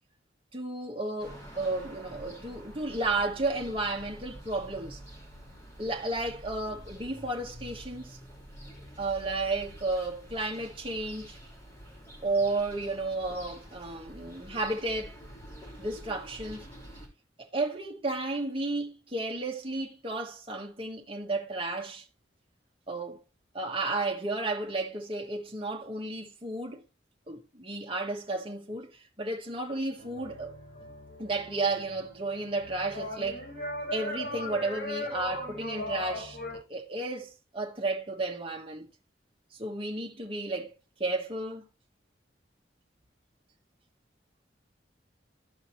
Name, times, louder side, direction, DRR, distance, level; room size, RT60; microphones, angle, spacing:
voice 1, 0.5-5.0 5.8-8.2 9.0-11.4 12.2-15.2 15.8-16.7 17.4-22.1 22.9-23.2 23.5-26.8 27.3-30.5 31.2-33.5 33.9-38.9 39.5-40.7 41.0-41.6, right 2 dB, 30° right, 1.3 m, -33 dB
sound 1, 1.2-17.1, equal, 15° left, 3.2 m, -47 dB
sound 2, 30.0-36.6, left 1 dB, 60° left, 5.7 m, -39 dB
14.5 x 5.1 x 2.9 m
head